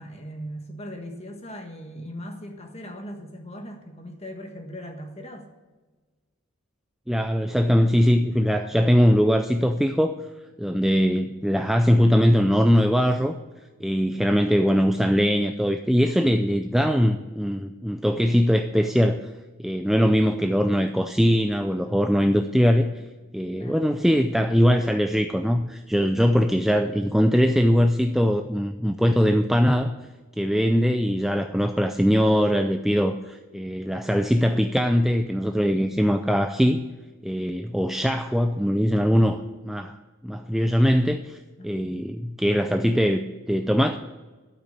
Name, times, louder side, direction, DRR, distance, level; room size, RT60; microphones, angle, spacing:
voice 1, 0.0-5.5 23.5-23.9 41.6-42.0, equal, 30° left, 4 dB, 1.5 m, -39 dB
voice 2, 7.1-10.1 10.6-13.4 13.8-19.3 19.6-22.9 23.3-30.0 30.4-36.8 37.2-40.0 40.2-44.0, equal, ahead, 6 dB, 0.3 m, -21 dB
12.5 x 5.9 x 8.4 m, 1.3 s
head